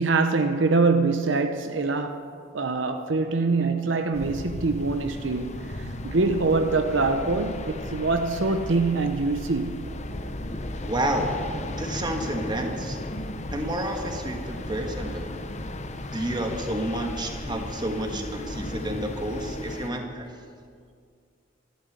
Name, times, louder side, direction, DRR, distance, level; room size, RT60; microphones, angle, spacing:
voice 1, 0.0-2.2 2.5-9.8, right 3 dB, 70° right, 0.8 m, -24 dB
sound 1, 4.1-19.9, left 1 dB, 35° left, 0.9 m, -35 dB
voice 2, 10.9-11.3 11.8-13.0 13.5-15.3 16.1-20.3, right 1 dB, 25° right, 1.6 m, -30 dB
13.0 x 11.5 x 8.1 m
head